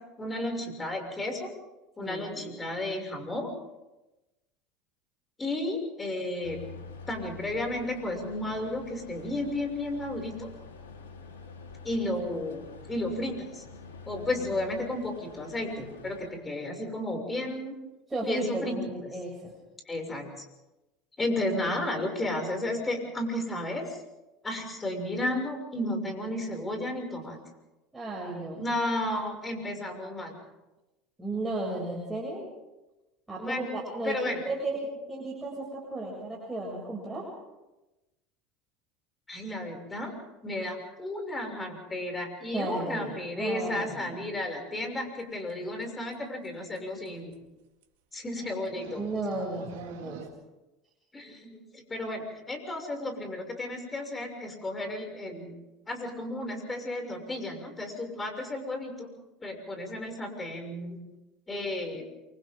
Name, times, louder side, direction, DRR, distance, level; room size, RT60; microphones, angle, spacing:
voice 1, 0.2-1.5 2.0-3.5 5.4-6.6 7.1-10.5 11.8-13.6 14.0-17.8 18.2-18.8 19.8-20.4 21.2-24.0 24.4-27.4 28.5-30.3 33.4-33.7 34.0-34.4 39.3-40.1 40.4-47.3 48.1-49.1 51.1-55.6 55.9-59.1 59.4-61.0 61.5-62.0, left 1 dB, 20° left, 3 dB, 6.7 m, -33 dB
voice 2, 2.0-2.5 14.1-14.6 18.1-19.5 27.9-28.6 31.2-32.4 33.3-34.8 35.1-37.2 42.5-44.2 49.0-50.2, right 2 dB, 10° right, -4 dB, 7.3 m, -34 dB
sound 1, 6.4-16.3, left 4 dB, 85° left, 3.9 m, -47 dB
sound 2, 45.2-45.3 45.5-45.8 46.1-46.2 46.4-46.5 46.8-46.9 47.0-47.3 47.8-47.9 48.4-50.3, right 9 dB, 75° right, 2.4 m, -46 dB
28.5 x 25.0 x 3.9 m, 1.0 s
hypercardioid pair, 80°, 0 cm